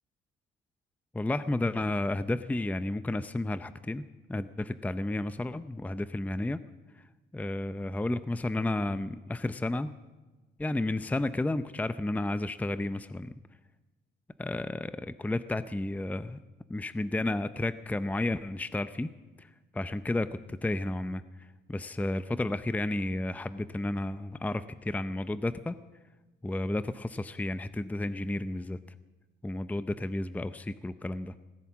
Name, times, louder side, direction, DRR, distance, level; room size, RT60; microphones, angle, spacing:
voice 1, 1.1-4.0 4.3-6.6 7.3-9.9 10.6-13.3 14.4-16.4 16.7-19.1 19.4-19.5 19.7-21.2 21.7-25.8 26.4-28.8 29.4-31.3, left 2 dB, 10° left, 13 dB, 0.6 m, -32 dB
18.0 x 10.5 x 7.4 m, 1.2 s
cardioid pair, 90°, 20 cm